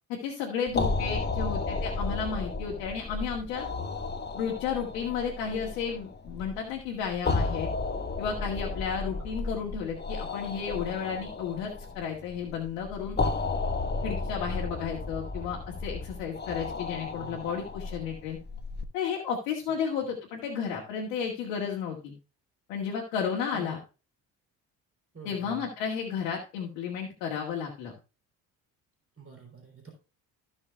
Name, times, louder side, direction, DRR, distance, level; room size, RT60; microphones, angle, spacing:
voice 1, 0.1-3.7 4.3-7.7 8.2-13.2 14.0-18.4 18.9-22.1 22.7-23.8 25.2-27.9, left 7 dB, 75° left, -1 dB, 2.1 m, -33 dB
sound 1, 0.7-18.8, left 3 dB, 20° left, 1.2 m, -33 dB
voice 2, 16.9-17.4 19.7-19.8 23.5-23.8 25.1-25.6 29.2-29.9, right 5 dB, 25° right, 1 dB, 3.7 m, -47 dB
15.5 x 6.4 x 2.3 m, 0.31 s
hypercardioid pair, 50°, 48 cm